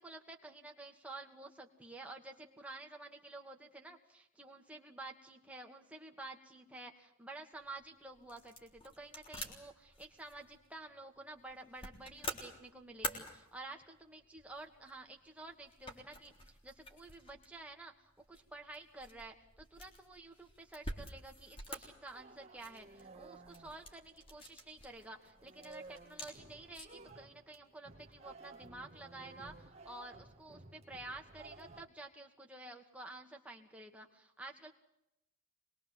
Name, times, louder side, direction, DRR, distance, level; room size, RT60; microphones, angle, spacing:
voice 1, 0.0-34.7, right 2 dB, 5° right, 2 dB, 2.4 m, -51 dB
sound 1, 7.5-27.1, left 1 dB, 25° left, 3.7 m, -49 dB
sound 2, 22.1-24.7 25.0-31.9, right 3 dB, 30° right, 2.0 m, -56 dB
25.5 x 21.5 x 7.8 m, 0.81 s
head